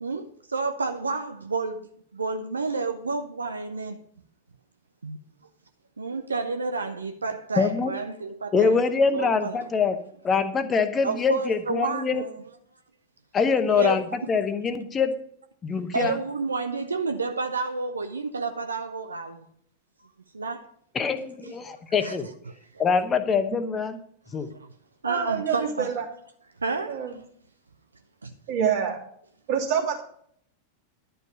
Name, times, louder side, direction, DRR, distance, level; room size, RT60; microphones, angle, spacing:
voice 1, 0.0-4.0 5.0-5.2 6.0-8.8 9.1-9.6 11.0-12.3 13.7-14.0 15.9-19.4 20.3-20.7 21.4-21.5 22.0-22.2 22.5-22.8 24.5-24.7 25.0-25.9 26.6-27.2 28.2-28.3, right 4 dB, 75° right, 0.7 m, -30 dB
voice 2, 7.6-7.9 8.5-10.0 10.2-12.2 13.3-15.1 15.6-16.2 20.9-22.3 22.8-24.0 24.3-24.5, left 5 dB, 20° left, 0.9 m, -24 dB
voice 3, 25.0-26.0 26.9-27.1 28.5-29.0 29.5-30.0, right 7 dB, 45° right, 2.8 m, -26 dB
11.5 x 5.3 x 7.2 m
figure-of-eight pair, 90°, 0 cm